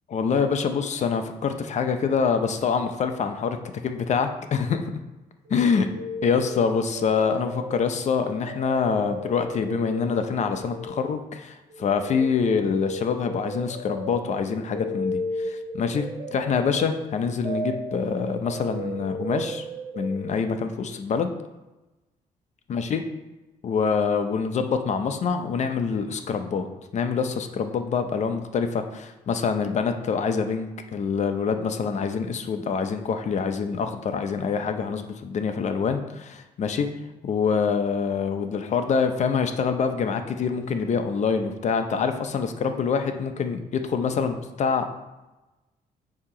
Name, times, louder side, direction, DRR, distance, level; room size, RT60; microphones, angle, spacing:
voice 1, 0.1-3.6 3.8-4.8 5.5-5.9 6.2-16.1 16.3-19.6 20.0-21.3 22.7-23.0 23.6-26.7 26.9-36.9 37.2-45.0, left 6 dB, 50° left, 7 dB, 0.6 m, -25 dB
sound 1, 5.5-11.4 11.7-20.3, equal, 40° right, 1.3 m, -35 dB
8.4 x 2.9 x 4.8 m, 1.1 s
cardioid pair, 120°, 15 cm